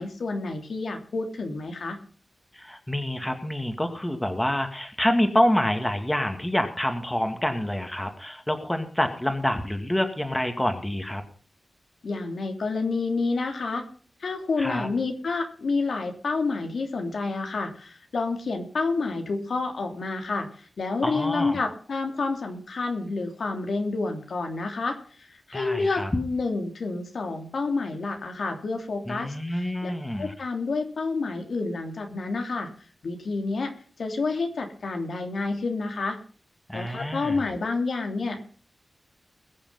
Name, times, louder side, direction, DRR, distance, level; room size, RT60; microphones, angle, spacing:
voice 1, 0.0-2.0 12.0-13.8 14.2-29.9 30.2-32.7 33.0-33.7 34.0-36.2 36.7-38.5, left 3 dB, 80° left, 4 dB, 3.0 m, -29 dB
voice 2, 2.5-11.2 14.6-14.9 21.0-21.6 25.5-26.1 29.1-30.3 36.7-37.4, left 1 dB, 10° left, 6 dB, 2.2 m, -27 dB
21.5 x 7.2 x 5.6 m, 0.43 s
wide cardioid pair, 100°, 0 cm